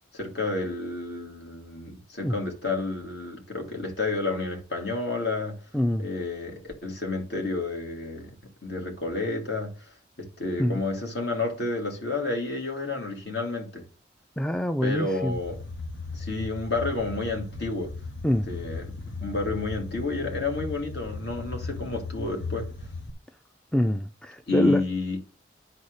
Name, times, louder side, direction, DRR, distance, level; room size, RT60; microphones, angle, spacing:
voice 1, 0.1-5.6 6.0-8.3 8.6-9.9 10.2-13.8 14.8-15.6 16.1-17.9 18.5-18.9 19.2-22.7 24.5-25.2, left 3 dB, 65° left, 2.4 m, -30 dB
voice 2, 5.7-6.1 10.6-10.8 14.4-15.4 18.2-18.5 23.7-24.8, equal, 5° left, 0.3 m, -25 dB
sound 1, 15.3-23.1, left 3 dB, 85° left, 1.3 m, -37 dB
10.0 x 4.2 x 6.4 m
head